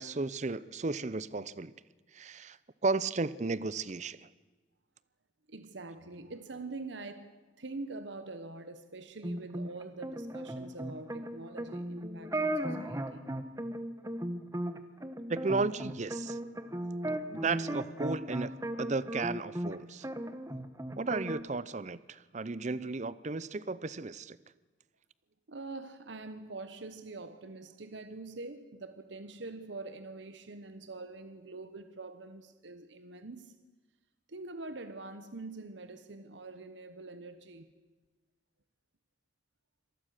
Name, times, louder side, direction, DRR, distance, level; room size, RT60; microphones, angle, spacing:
voice 1, 0.0-1.7 2.1-2.6 2.8-4.3 15.3-16.4 17.3-18.5 18.8-20.1 21.0-24.4, right 3 dB, 40° right, 18 dB, 0.6 m, -34 dB
voice 2, 5.5-13.3 25.5-33.6 34.3-37.7, right 3 dB, 75° right, 10 dB, 1.1 m, -45 dB
sound 1, 9.2-19.8 20.0-21.4, right 1 dB, 15° right, 1.1 m, -36 dB
26.0 x 19.0 x 6.6 m, 1.2 s
head